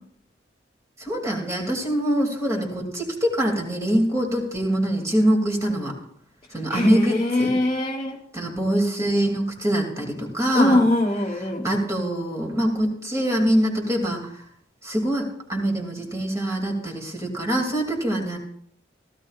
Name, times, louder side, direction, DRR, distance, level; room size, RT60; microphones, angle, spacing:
voice 1, 1.0-5.9 6.5-7.5 8.3-10.8 11.6-14.3 14.8-18.4, right 1 dB, 15° right, 0 dB, 2.5 m, -24 dB
voice 2, 6.7-8.2 10.5-11.7, left 1 dB, 30° left, -2 dB, 1.3 m, -22 dB
16.0 x 15.0 x 2.4 m, 0.66 s
head